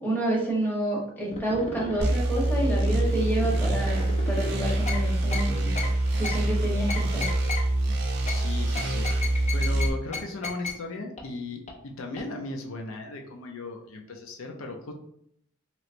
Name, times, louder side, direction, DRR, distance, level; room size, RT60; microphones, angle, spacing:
voice 1, 0.0-5.7 6.2-7.3, right 1 dB, 10° left, -4 dB, 1.0 m, -29 dB
sound 1, 1.3-2.0 2.4-4.4 4.9-5.0 5.3-5.4 5.7-5.9 6.2-6.4 6.9-7.6 8.3-8.4 8.7-9.8 10.1-10.2 10.4-10.7 11.2-11.3 11.7-11.8 12.2-12.3, left 3 dB, 35° left, 0.5 m, -34 dB
sound 2, 2.0-9.9, right 1 dB, 55° right, 0.6 m, -25 dB
voice 2, 8.2-9.1 9.5-14.9, left 2 dB, 80° left, 3 dB, 0.5 m, -37 dB
3.1 x 2.9 x 2.5 m, 0.70 s
head